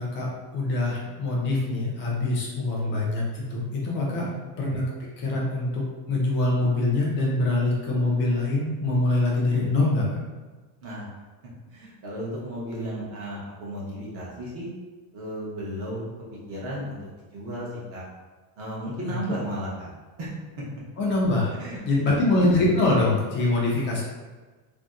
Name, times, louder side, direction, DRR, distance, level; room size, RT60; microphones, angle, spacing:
voice 1, 0.0-4.3 4.6-4.8 5.2-10.2 19.1-19.2 21.0-21.5 21.9-24.0, left 2 dB, 25° left, -4 dB, 0.3 m, -24 dB
voice 2, 4.1-4.4 10.8-11.1 11.7-14.7 15.1-16.1 16.5-17.0 17.3-18.0 18.6-19.9 20.2-20.3 21.6-22.1, equal, 30° right, -6 dB, 0.8 m, -34 dB
2.7 x 2.1 x 3.5 m, 1.3 s
cardioid pair, 165°, 50 cm